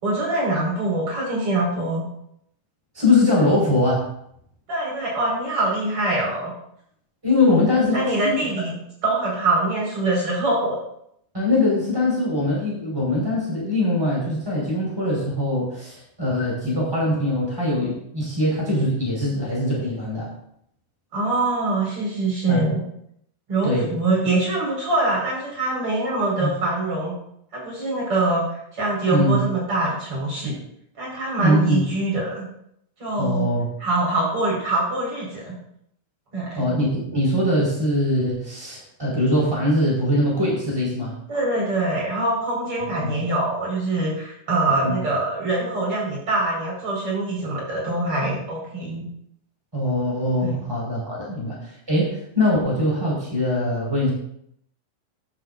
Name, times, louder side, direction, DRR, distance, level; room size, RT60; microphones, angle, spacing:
voice 1, 0.0-2.1 4.7-6.5 7.9-8.7 9.0-10.8 21.1-22.8 23.5-27.1 27.5-30.6 31.0-32.4 33.0-33.5 33.8-35.5 36.3-36.6 41.3-49.0 50.4-50.5 51.2-51.3, right 2 dB, 45° right, -4 dB, 6.5 m, -24 dB
voice 2, 2.9-4.1 7.2-8.6 11.3-20.3 22.5-22.7 23.6-23.9 26.4-26.5 29.1-29.4 31.4-31.8 33.2-33.7 36.5-41.1 43.0-43.1 44.8-45.0 49.7-54.1, left 1 dB, 5° right, -4 dB, 5.3 m, -22 dB
13.0 x 12.0 x 2.7 m, 0.72 s
omnidirectional pair, 3.6 m